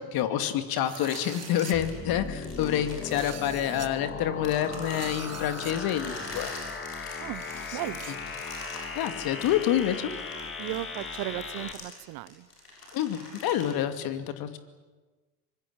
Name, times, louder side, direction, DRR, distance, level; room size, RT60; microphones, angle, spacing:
voice 1, 0.1-6.6 7.7-7.8 9.0-10.1 12.9-14.6, left 11 dB, 50° left, 10 dB, 2.5 m, -28 dB
sound 1, 0.8-1.8 2.9-3.9 4.7-5.7 6.0-6.1 7.2-8.2, right 9 dB, 35° right, 1.8 m, -44 dB
sound 2, 0.9-4.0 4.4-13.6, left 2 dB, 85° left, 6.9 m, -45 dB
sound 3, 1.7-11.7, left 4 dB, 25° left, 2.7 m, -38 dB
voice 2, 7.7-8.2 10.6-12.5, right 18 dB, 55° right, 19 dB, 1.1 m, -36 dB
24.5 x 22.0 x 8.9 m, 1.3 s
hypercardioid pair, 70°, 45 cm